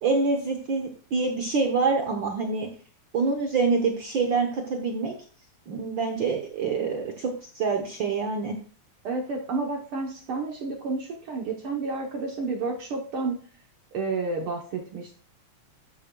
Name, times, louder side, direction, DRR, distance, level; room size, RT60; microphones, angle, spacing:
voice 1, 0.0-2.7 3.1-5.1 5.7-8.6, right 4 dB, 75° right, 3 dB, 1.0 m, -26 dB
voice 2, 9.0-13.4 13.9-15.1, right 3 dB, 60° right, 1 dB, 1.5 m, -30 dB
13.0 x 7.3 x 2.3 m, 0.43 s
omnidirectional pair, 3.5 m